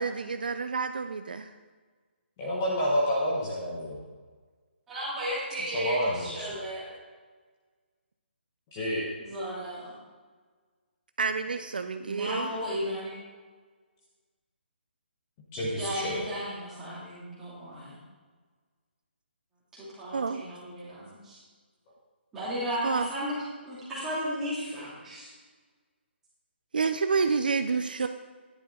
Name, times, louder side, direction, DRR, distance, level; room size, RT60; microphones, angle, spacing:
voice 1, 0.0-1.5 11.2-12.5 20.1-20.4 22.8-23.1 26.7-28.1, right 5 dB, 50° right, 8 dB, 0.6 m, -29 dB
voice 2, 2.4-4.0 5.7-6.6 8.7-9.0 15.5-16.2, equal, 15° left, -4 dB, 1.1 m, -29 dB
voice 3, 4.9-7.0 9.2-9.9 12.1-13.2 15.8-18.0 19.7-21.4 22.3-25.3, equal, 5° right, -10 dB, 2.5 m, -34 dB
13.0 x 10.5 x 3.8 m, 1.4 s
hypercardioid pair, 180°, 6 cm